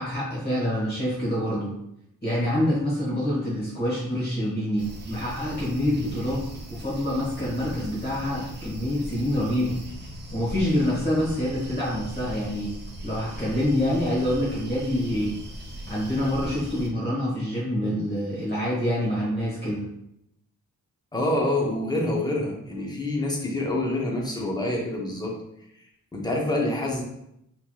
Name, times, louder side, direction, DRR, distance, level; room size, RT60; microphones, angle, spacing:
voice 1, 0.0-1.7 2.2-6.4 6.7-9.8 10.3-12.7 13.0-15.3 15.9-19.8, left 1 dB, 30° left, -7 dB, 1.1 m, -26 dB
sound 1, 4.8-16.9, right 1 dB, 30° right, 0.5 m, -39 dB
voice 2, 21.1-25.4 26.1-27.0, left 1 dB, 10° left, -2 dB, 0.6 m, -26 dB
3.2 x 2.8 x 2.2 m, 0.81 s
wide cardioid pair, 105°, 34 cm